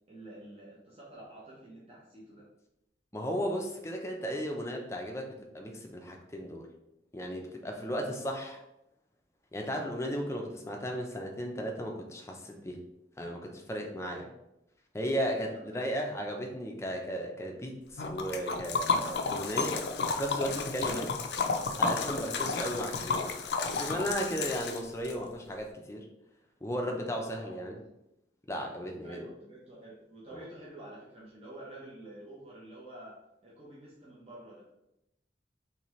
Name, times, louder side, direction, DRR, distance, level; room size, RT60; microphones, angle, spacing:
voice 1, 0.1-2.5 7.8-8.1 14.1-14.3 15.3-15.9 27.3-27.6 29.0-34.6, right 1 dB, 35° right, -7 dB, 1.0 m, -49 dB
voice 2, 3.1-6.7 7.1-8.6 9.5-12.8 13.2-14.2 14.9-19.8 20.2-21.3 21.8-23.3 23.7-26.1 26.6-27.8 28.5-29.2 30.3-30.4, equal, 15° left, 1 dB, 0.5 m, -35 dB
Liquid, 18.0-25.1, left 4 dB, 75° left, 0.4 m, -32 dB
4.2 x 3.3 x 3.1 m, 0.85 s
head